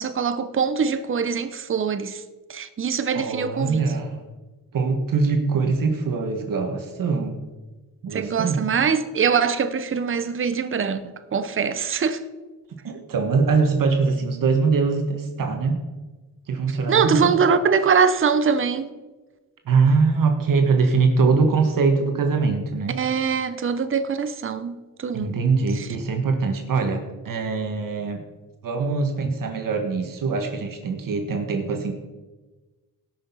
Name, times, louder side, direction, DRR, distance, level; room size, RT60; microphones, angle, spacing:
voice 1, 0.0-2.2 2.5-3.8 8.1-12.2 16.9-18.9 22.9-25.4 25.7-25.9 31.1-31.2, right 6 dB, 35° right, 0.8 m, -23 dB
voice 2, 3.1-4.2 4.7-7.5 8.0-8.6 12.8-15.8 16.5-17.3 19.6-23.0 25.1-28.2 28.6-31.9, right 4 dB, 65° right, 1.5 m, -22 dB
17.5 x 6.2 x 5.5 m
cardioid pair, 110°, 35 cm